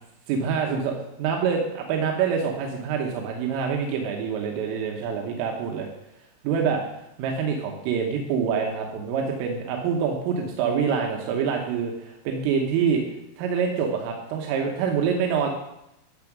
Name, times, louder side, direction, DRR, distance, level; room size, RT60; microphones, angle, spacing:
voice 1, 0.3-5.9 6.5-6.8 7.2-13.0 13.4-15.5, right 6 dB, 90° right, 1 dB, 3.8 m, -26 dB
12.5 x 7.1 x 6.0 m, 0.86 s
omnidirectional pair, 5.7 m